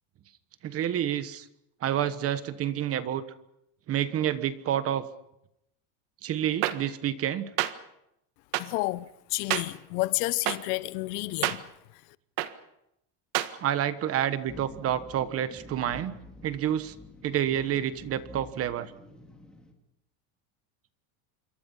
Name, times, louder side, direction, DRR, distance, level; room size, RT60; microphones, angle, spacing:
voice 1, 0.6-1.5 1.8-3.2 3.9-5.0 6.2-7.5 13.6-16.1 16.4-16.9 17.2-18.9, right 10 dB, 30° right, 1.2 m, -28 dB
sound 1, 6.6-6.7 7.6-7.7 8.5-8.6 9.5-9.6 10.5-10.6 11.4-11.6 12.4-12.5 13.3-13.5, right 16 dB, 75° right, 1.7 m, -26 dB
voice 2, 8.6-11.6, left 19 dB, 90° left, 1.1 m, -30 dB
sound 2, 14.5-19.7, left 1 dB, ahead, 2.9 m, -48 dB
27.5 x 23.5 x 5.6 m
cardioid pair, 165°, 45 cm